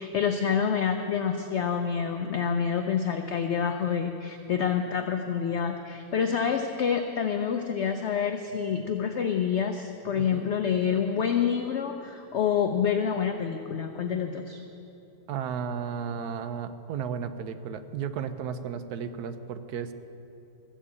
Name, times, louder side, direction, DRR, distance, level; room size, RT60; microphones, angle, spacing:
voice 1, 0.0-14.6, left 7 dB, 65° left, 6 dB, 0.7 m, -27 dB
voice 2, 10.2-10.5 15.3-19.9, right 7 dB, 70° right, 10 dB, 1.1 m, -34 dB
14.0 x 7.3 x 8.3 m, 2.8 s
omnidirectional pair, 1.8 m